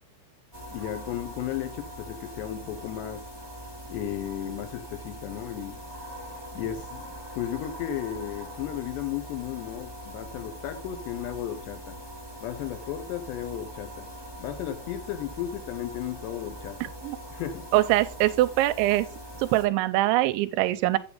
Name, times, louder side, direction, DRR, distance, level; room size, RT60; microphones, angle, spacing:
sound 1, 0.5-19.7, equal, 30° left, 0.4 m, -42 dB
voice 1, 0.7-3.3 3.9-5.8 6.5-12.0 12.4-14.1 14.4-16.8 17.3-17.7, left 11 dB, 75° left, 2.9 m, -34 dB
voice 2, 17.7-19.1 19.4-21.0, right 16 dB, 85° right, 2.9 m, -23 dB
8.3 x 7.9 x 3.9 m
omnidirectional pair, 5.3 m